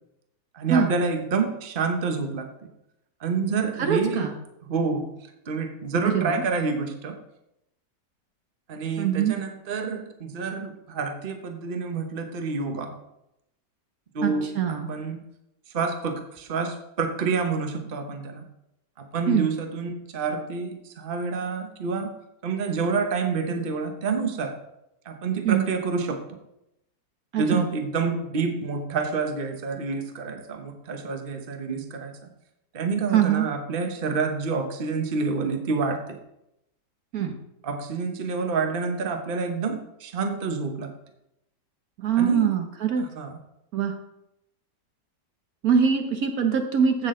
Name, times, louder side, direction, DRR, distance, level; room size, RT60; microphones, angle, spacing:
voice 1, 0.5-2.5 3.2-4.3 4.6-5.1 5.5-7.2 8.7-12.9 14.1-15.2 15.7-18.4 19.0-22.1 22.4-24.6 25.0-26.4 27.3-32.3 32.7-36.2 37.6-40.9 42.2-42.5 43.0-43.4, right 4 dB, 35° right, 5 dB, 1.1 m, -28 dB
voice 2, 3.8-4.3 6.1-6.4 9.0-9.3 14.2-14.9 19.3-19.5 25.4-25.6 27.3-27.7 31.7-31.9 33.1-33.5 37.1-37.4 42.0-43.0 43.7-43.9 45.6-47.1, right 7 dB, 60° right, 5 dB, 1.3 m, -23 dB
15.5 x 6.3 x 3.8 m, 0.84 s
omnidirectional pair, 1.8 m